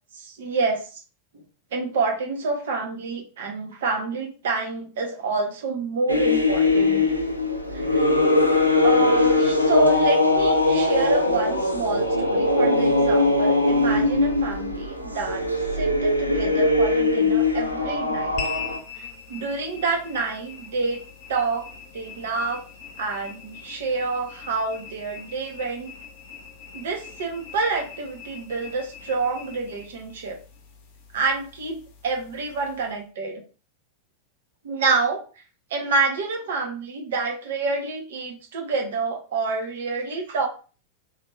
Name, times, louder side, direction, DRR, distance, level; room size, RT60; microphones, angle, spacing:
voice 1, 0.2-0.9 1.7-7.0 7.7-8.1 8.8-15.5 15.7-18.4 19.3-21.0 21.3-21.7 21.9-22.6 23.0-25.9 26.7-30.4 31.1-33.4 34.6-35.2 35.7-40.5, right 3 dB, 60° right, 2 dB, 1.0 m, -27 dB
sound 1, 6.1-18.8, left 2 dB, 90° left, 0.5 m, -21 dB
sound 2, 18.4-33.0, left 7 dB, 45° left, 0.7 m, -41 dB
3.5 x 2.9 x 2.4 m, 0.36 s
figure-of-eight pair, 90°, 0 cm